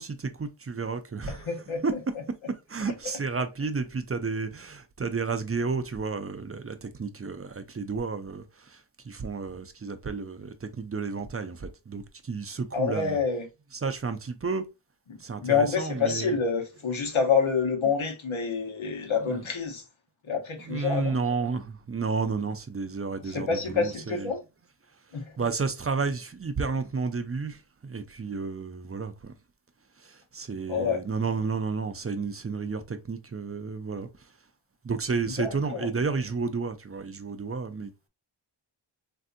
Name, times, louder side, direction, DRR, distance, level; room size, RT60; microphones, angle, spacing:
voice 1, 0.0-1.5 1.8-2.0 2.5-13.2 13.8-14.7 15.2-16.4 19.0-19.4 20.6-24.3 25.4-29.3 30.0-34.3 34.8-38.1, right 4 dB, 30° right, 0.5 m, -32 dB
voice 2, 1.3-2.0 2.9-3.0 12.7-13.5 15.1-19.8 20.2-21.2 23.2-24.4 25.1-25.3 30.7-31.0 35.4-35.9, left 5 dB, 80° left, 1.0 m, -27 dB
3.3 x 2.6 x 2.5 m
wide cardioid pair, 45°, 47 cm